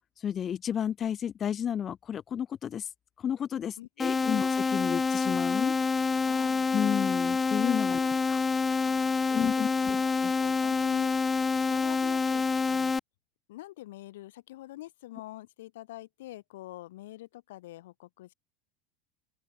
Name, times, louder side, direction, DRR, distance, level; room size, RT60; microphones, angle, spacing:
voice 1, 0.2-2.9 3.2-5.7 6.7-8.0 8.3-8.4 9.3-10.0 10.2-10.3, left 9 dB, 30° left, 1.2 m, -32 dB
voice 2, 3.8-4.4 6.2-6.7 7.9-8.4 8.7-11.4 11.7-13.0 13.5-18.3, left 16 dB, 90° left, 3.3 m, -46 dB
sound 1, 4.0-13.0, left 4 dB, 15° left, 0.3 m, -27 dB
open air
supercardioid pair, 125°, 0 cm